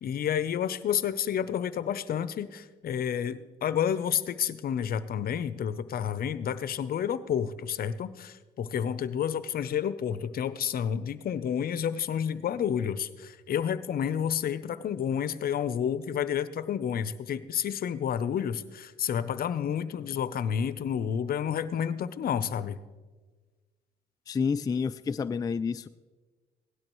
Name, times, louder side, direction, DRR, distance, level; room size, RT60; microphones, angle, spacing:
voice 1, 0.0-22.8, left 8 dB, 55° left, 14 dB, 0.7 m, -30 dB
voice 2, 24.3-25.9, left 5 dB, 20° left, 10 dB, 0.3 m, -29 dB
17.0 x 12.0 x 3.1 m, 1.3 s
cardioid pair, 85°, 18 cm